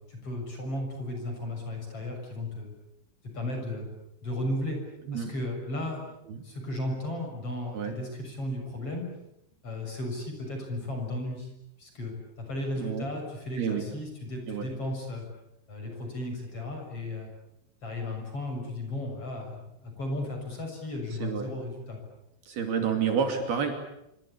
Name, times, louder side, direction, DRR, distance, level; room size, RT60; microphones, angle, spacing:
voice 1, 0.1-2.7 3.2-3.9 4.2-4.8 5.1-6.1 6.4-9.0 9.6-11.5 11.8-15.2 15.7-17.3 17.8-22.0, left 1 dB, 30° left, 3 dB, 7.6 m, -35 dB
voice 2, 22.5-23.7, right 7 dB, 60° right, 5 dB, 4.5 m, -29 dB
27.5 x 24.5 x 8.7 m, 0.82 s
omnidirectional pair, 5.4 m